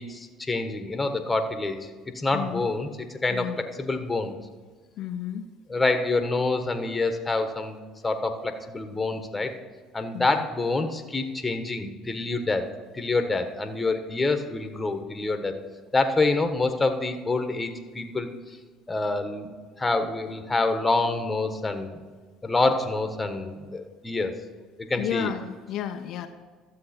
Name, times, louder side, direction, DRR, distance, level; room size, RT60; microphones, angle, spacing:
voice 1, 0.0-1.8 2.1-4.4 5.7-7.8 8.0-9.5 9.9-15.5 15.9-18.6 18.9-19.5 19.8-22.0 22.4-24.3 24.9-25.3, left 3 dB, 20° left, 7 dB, 1.3 m, -27 dB
voice 2, 2.3-2.7 3.3-3.6 5.0-5.4 10.1-10.5 25.0-26.3, left 9 dB, 65° left, 5 dB, 0.7 m, -32 dB
12.5 x 7.5 x 4.4 m, 1.5 s
supercardioid pair, 80°, 0 cm